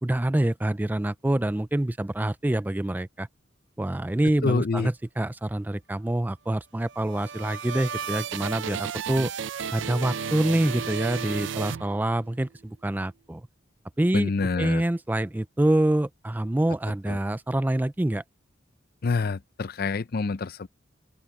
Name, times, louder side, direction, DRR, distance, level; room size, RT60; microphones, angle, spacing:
voice 1, 0.0-3.3 3.8-9.3 9.7-13.4 14.0-14.3 14.6-18.2, right 1 dB, 10° right, 0.3 m, -26 dB
voice 2, 4.4-4.9 14.1-14.8 17.1-17.2 19.0-20.7, left 4 dB, 50° left, 0.5 m, -27 dB
sound 1, 6.8-12.4, right 7 dB, 70° right, 0.5 m, -33 dB
open air
head